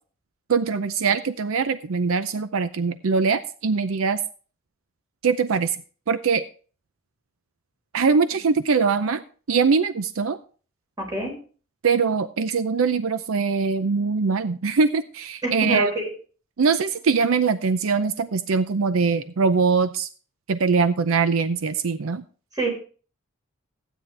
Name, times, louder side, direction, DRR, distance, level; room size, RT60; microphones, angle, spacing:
voice 1, 0.5-4.2 5.2-5.8 6.1-6.4 7.9-9.2 9.5-10.4 11.8-15.9 16.6-20.1 20.5-22.2, right 5 dB, 80° right, 12 dB, 0.6 m, -22 dB
voice 2, 11.0-11.3 15.4-16.1 22.5-22.7, right 1 dB, 20° right, -1 dB, 4.7 m, -26 dB
15.0 x 9.1 x 3.3 m, 0.39 s
head